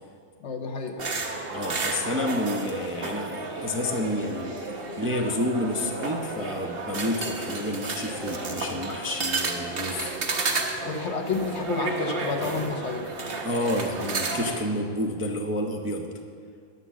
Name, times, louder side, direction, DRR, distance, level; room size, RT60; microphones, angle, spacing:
voice 1, 0.4-1.0 10.8-13.1, left 4 dB, 60° left, 3 dB, 1.1 m, -30 dB
sound 1, 1.0-14.6, right 3 dB, 45° right, 1.1 m, -32 dB
voice 2, 1.5-10.1 13.4-16.1, left 1 dB, 15° right, 0 dB, 0.5 m, -30 dB
10.5 x 6.7 x 7.3 m, 2.3 s
omnidirectional pair, 1.4 m